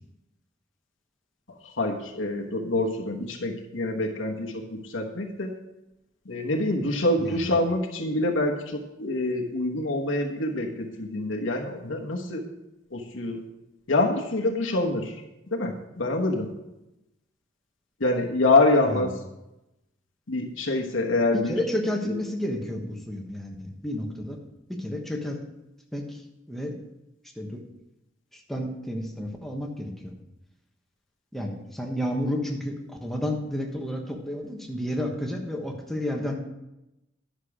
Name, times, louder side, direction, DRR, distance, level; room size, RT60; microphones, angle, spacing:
voice 1, 1.6-5.5 6.2-12.4 12.9-13.4 13.9-15.2 15.5-16.5 18.0-19.1 20.3-21.6 22.1-22.2, left 2 dB, 80° left, 1 dB, 1.2 m, -26 dB
voice 2, 7.2-7.5 18.8-19.1 21.5-24.4 24.7-25.4 25.9-26.8 27.3-27.6 28.3-30.1 31.3-36.4, left 1 dB, ahead, 1 dB, 1.2 m, -31 dB
10.5 x 6.4 x 4.9 m, 0.92 s
head